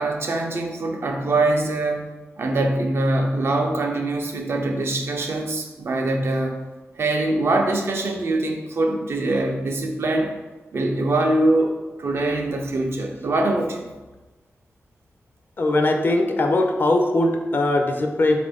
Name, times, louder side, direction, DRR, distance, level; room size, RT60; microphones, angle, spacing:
voice 1, 0.0-2.1 2.4-6.6 7.0-10.3 10.7-13.9, right 2 dB, 60° right, 3 dB, 0.4 m, -23 dB
voice 2, 15.6-18.4, left 2 dB, 45° left, 3 dB, 0.4 m, -20 dB
3.5 x 2.5 x 3.4 m, 1.2 s
wide cardioid pair, 105°, 5 cm